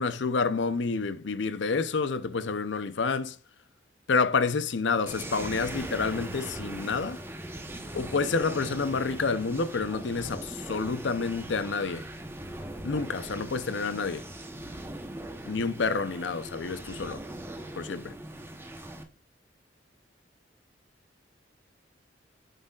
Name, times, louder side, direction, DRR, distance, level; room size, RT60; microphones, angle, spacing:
voice 1, 0.0-3.4 4.1-7.2 7.9-12.1 12.8-14.2 15.5-17.2 17.8-18.2, left 4 dB, 80° left, 0.7 m, -29 dB
sound 1, 5.1-19.0, right 1 dB, 15° right, 0.9 m, -40 dB
9.1 x 6.5 x 2.4 m
head